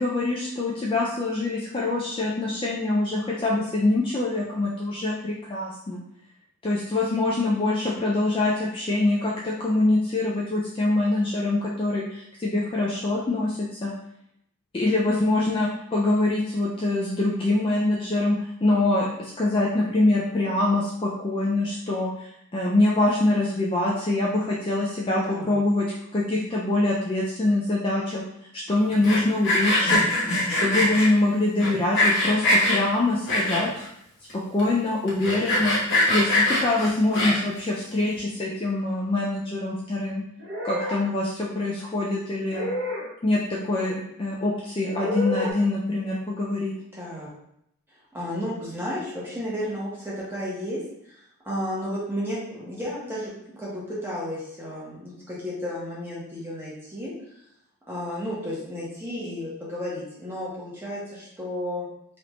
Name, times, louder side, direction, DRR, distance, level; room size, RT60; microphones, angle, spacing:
voice 1, 0.0-6.0 6.6-13.9 14.7-25.9 26.1-28.2 28.5-30.0 30.5-33.7 34.3-35.8 36.1-40.2 40.6-42.7 43.2-46.7, left 2 dB, 25° left, -4 dB, 0.3 m, -24 dB
voice 2, 25.2-25.6 46.9-47.3 48.1-51.1 51.4-53.3 53.6-57.1 57.9-61.9, equal, 10° right, -7 dB, 0.9 m, -32 dB
Sawing, 28.9-31.1 31.6-32.8 33.3-33.9 34.3-34.4 34.6-34.7 35.1-37.6, left 1 dB, 55° left, 1.0 m, -22 dB
sound 1, 40.4-41.0 42.5-43.1 44.8-45.5, left 1 dB, 50° right, 0.9 m, -29 dB
3.3 x 2.5 x 3.0 m, 0.75 s
head